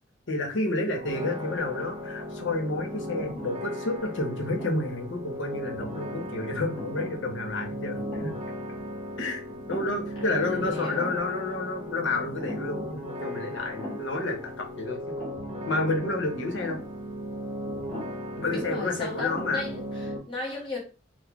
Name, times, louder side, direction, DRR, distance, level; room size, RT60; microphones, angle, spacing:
voice 1, 0.3-8.3 9.2-9.4 9.7-15.2 15.7-16.8 18.4-19.6, left 2 dB, 90° left, 0.9 m, -30 dB
sound 1, 0.9-1.5 2.0-2.7 3.3-3.6 4.4-5.1 5.5-6.1 6.8-7.3 7.5-7.6 8.0-8.5 8.8-8.9 9.5-10.2 10.4-10.5 11.0-11.4 12.4-12.8 13.8-14.2 15.2-15.6 16.6-17.0 17.9-18.3 18.9-19.0 19.3-19.8, left 1 dB, 10° left, 1.0 m, -41 dB
sound 2, 1.0-20.2, equal, 35° right, 0.7 m, -37 dB
voice 2, 10.2-11.1 18.5-20.8, left 2 dB, 25° left, 1.2 m, -36 dB
3.9 x 2.1 x 2.9 m
head